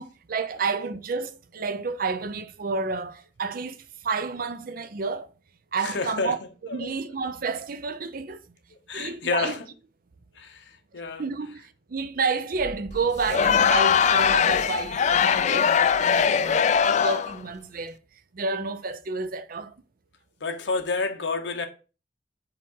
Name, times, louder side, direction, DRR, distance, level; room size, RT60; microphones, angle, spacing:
voice 1, 0.0-5.3 5.7-6.4 6.7-8.6 8.9-9.6 11.2-19.8, right 4 dB, 55° right, 0.5 m, -30 dB
voice 2, 5.8-6.3 6.7-6.9 8.9-9.6 10.3-11.2 16.8-17.0 20.4-21.7, left 4 dB, 85° left, 0.9 m, -29 dB
sound 1, 12.5-17.6, right 1 dB, 20° right, 1.5 m, -46 dB
Crowd, 13.2-17.4, left 7 dB, 40° left, 0.3 m, -21 dB
4.8 x 3.6 x 5.4 m
head